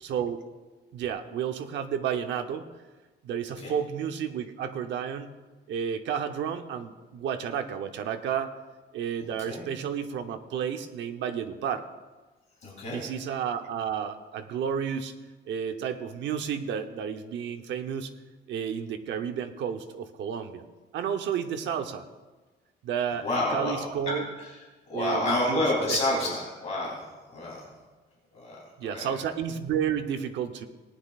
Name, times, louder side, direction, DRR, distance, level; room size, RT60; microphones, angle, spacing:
voice 1, 0.0-0.4 0.9-2.7 3.2-5.4 5.7-8.5 8.9-11.9 12.8-15.1 15.5-18.1 18.5-20.6 20.9-22.0 22.8-24.3 24.9-25.6 25.9-26.0 26.2-26.3 28.8-30.7, right 8 dB, 75° right, 7 dB, 0.9 m, -31 dB
voice 2, 12.6-13.1 23.2-24.6 24.9-27.7 28.3-29.1, left 1 dB, 35° left, -4 dB, 3.4 m, -30 dB
18.5 x 9.9 x 2.4 m, 1.3 s
cardioid pair, 175°, 19 cm